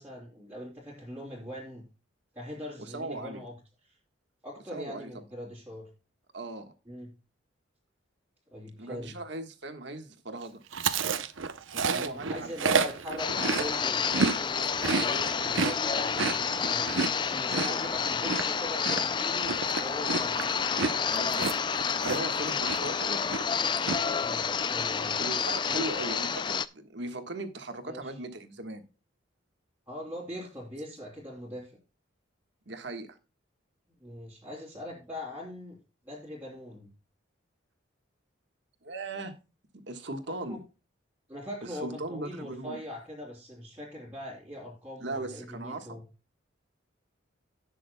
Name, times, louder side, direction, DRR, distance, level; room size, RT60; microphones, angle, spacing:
voice 1, 0.0-1.8 2.3-3.5 3.8-3.9 4.4-5.9 6.9-7.1 8.5-9.2 11.9-16.9 17.3-20.6 24.2-25.1 25.7-26.0 27.8-28.1 29.9-31.7 34.0-35.8 36.0-36.9 40.3-40.6 41.3-46.0, left 1 dB, 10° right, 3.1 m, -41 dB
voice 2, 2.8-3.4 4.7-5.1 6.3-6.7 8.8-10.6 11.7-12.8 17.6-18.0 21.1-21.5 22.0-23.3 25.2-28.8 32.7-33.1 38.8-39.4 39.7-40.6 41.6-42.8 45.0-45.9, right 2 dB, 60° right, 1.5 m, -38 dB
Chewing mastication, 10.7-14.4 14.7-22.4 22.7-23.0 23.3-24.0, right 5 dB, 80° right, 0.8 m, -30 dB
sound 1, 13.2-26.7, left 6 dB, 25° left, 0.3 m, -29 dB
17.5 x 6.3 x 2.2 m
head